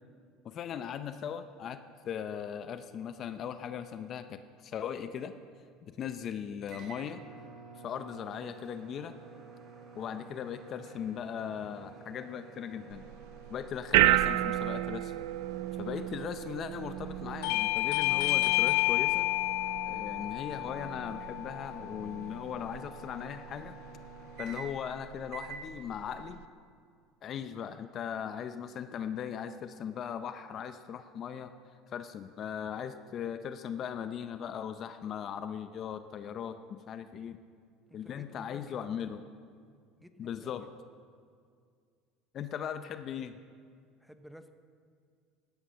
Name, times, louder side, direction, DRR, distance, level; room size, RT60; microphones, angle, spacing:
voice 1, 0.4-5.3 5.8-7.2 7.8-9.1 9.9-13.0 13.5-15.1 15.8-19.3 19.8-23.8 24.4-26.4 27.2-31.5 31.9-37.4 37.9-39.2 40.2-40.7 42.3-43.4, left 8 dB, 40° left, 10 dB, 0.6 m, -38 dB
sound 1, 6.7-24.9 25.3-25.6, right 5 dB, 55° right, 3.5 m, -50 dB
sound 2, 12.9-26.4, right 15 dB, 90° right, 0.4 m, -34 dB
Bell / Doorbell, 17.4-22.6, left 23 dB, 80° left, 0.3 m, -30 dB
voice 2, 37.9-39.0 40.0-40.9 44.0-44.5, equal, ahead, 8 dB, 0.9 m, -54 dB
16.5 x 11.5 x 5.7 m, 2.2 s
cardioid pair, 130°, 0 cm